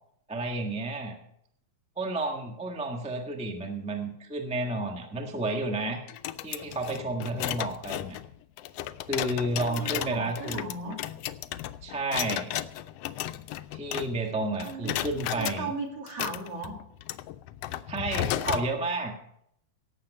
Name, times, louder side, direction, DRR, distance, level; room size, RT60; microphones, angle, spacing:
voice 1, 0.3-1.2 2.0-6.0 6.4-8.2 9.1-10.6 11.8-12.6 13.7-15.7 17.9-19.2, right 2 dB, 5° right, 2 dB, 0.4 m, -31 dB
sound 1, 6.1-14.3 14.6-15.6 16.1-18.7, left 13 dB, 85° left, 1.4 m, -34 dB
voice 2, 9.4-11.0 14.6-16.8, right 3 dB, 55° right, 1 dB, 3.4 m, -37 dB
17.5 x 7.5 x 5.5 m, 0.73 s
omnidirectional pair, 3.4 m